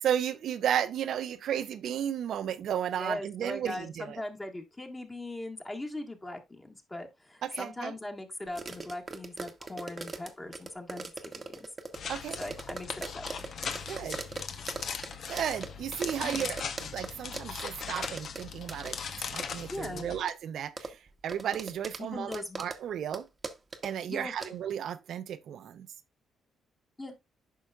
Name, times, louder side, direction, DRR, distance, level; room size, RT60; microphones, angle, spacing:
voice 1, 0.0-4.2 7.4-7.9 12.1-12.4 13.9-14.2 15.3-21.0 21.2-23.3 23.8-25.9, right 9 dB, 70° right, 0.6 m, -34 dB
voice 2, 3.0-11.6 12.4-13.4 16.2-16.5 19.7-20.1 22.0-22.6 24.1-24.6 27.0-27.1, left 1 dB, 20° left, 1.7 m, -40 dB
sound 1, 8.5-17.1 17.3-18.4 18.7-19.0 19.4-19.5 20.3-20.4 20.8-22.0 22.3-22.8 23.1-23.2 23.4-23.9 24.4-24.5, right 4 dB, 30° right, 1.0 m, -39 dB
sound 2, 11.9-20.2, left 6 dB, 55° left, 0.8 m, -39 dB
9.3 x 5.7 x 2.4 m
cardioid pair, 90°, 0 cm